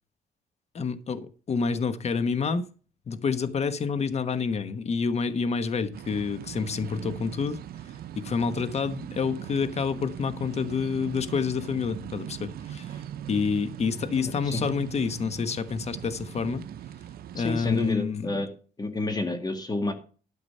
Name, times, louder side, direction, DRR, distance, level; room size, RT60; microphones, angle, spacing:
voice 1, 0.7-2.7 3.1-7.6 8.2-13.0 13.3-16.6 17.3-18.3, left 5 dB, 45° left, 1.2 m, -28 dB
sound 1, 5.9-17.9, right 10 dB, 75° right, 0.7 m, -40 dB
voice 2, 14.2-14.6 17.4-18.5 18.8-19.9, left 2 dB, 25° left, 1.9 m, -30 dB
12.5 x 6.0 x 5.5 m
cardioid pair, 110°, 16 cm